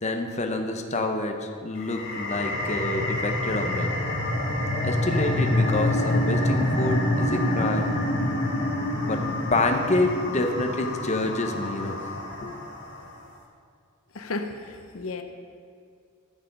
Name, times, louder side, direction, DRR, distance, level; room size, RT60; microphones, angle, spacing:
voice 1, 0.0-3.9 4.8-8.0 9.1-9.2 9.5-12.1 12.4-12.5, left 2 dB, 30° left, 4 dB, 0.9 m, -27 dB
sound 1, 1.8-12.9, left 1 dB, 55° left, 1.7 m, -27 dB
voice 2, 14.1-15.2, left 3 dB, 70° left, 6 dB, 0.8 m, -33 dB
13.5 x 6.9 x 5.3 m, 2.3 s
head